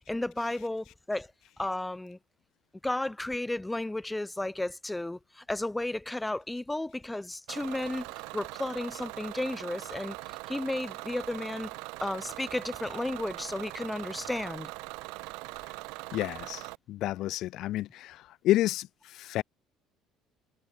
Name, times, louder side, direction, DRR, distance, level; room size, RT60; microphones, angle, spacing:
voice 1, 0.1-1.3 1.6-2.2 2.8-8.1 8.3-11.7 12.0-14.7, left 1 dB, 10° left, 0.9 m, -33 dB
Bus / Engine, 7.5-16.8, right 27 dB, 65° right, 0.8 m, -41 dB
voice 2, 16.1-19.4, left 15 dB, 55° left, 0.5 m, -30 dB
figure-of-eight pair, 55°, 0 cm